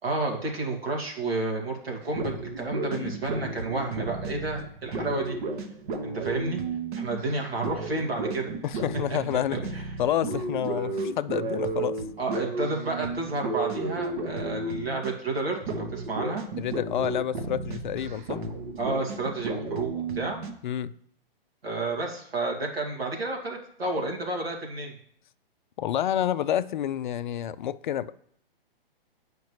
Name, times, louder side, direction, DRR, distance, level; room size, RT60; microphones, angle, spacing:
voice 1, 0.0-5.4 6.0-6.6 6.9-8.8 9.7-9.8 12.2-16.4 18.8-20.4 21.6-24.9, right 2 dB, 85° right, 0 dB, 2.2 m, -31 dB
sound 1, 2.0-15.3 15.6-20.5, right 3 dB, 55° right, 1.1 m, -33 dB
voice 2, 8.6-9.6 10.0-12.0 16.6-18.4 20.6-21.0 25.8-28.1, left 10 dB, 55° left, 14 dB, 0.4 m, -29 dB
9.3 x 5.0 x 3.2 m, 0.66 s
hypercardioid pair, 130°, 29 cm